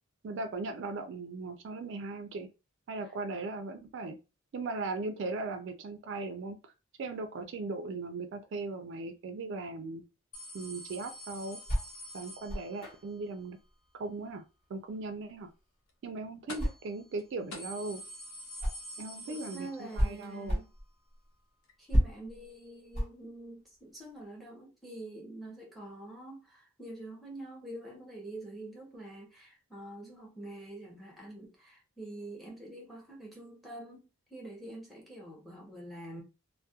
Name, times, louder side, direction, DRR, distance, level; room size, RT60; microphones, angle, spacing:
voice 1, 0.2-2.5 2.9-4.2 4.5-6.6 7.0-10.0 10.5-11.6 12.1-13.6 13.9-14.4 14.7-15.5 16.0-18.0 19.0-20.6, right 3 dB, 55° right, 0.3 m, -38 dB
sound 1, 10.3-13.0 16.5-16.9 17.2-17.3 17.5-20.2 20.6-20.7 21.7-21.8, equal, 70° left, 0.6 m, -46 dB
sound 2, 10.6-19.1 19.5-24.2, equal, 30° left, 0.9 m, -34 dB
voice 2, 19.3-20.7 21.8-36.2, right 1 dB, ahead, 0.7 m, -46 dB
2.2 x 2.1 x 2.7 m
head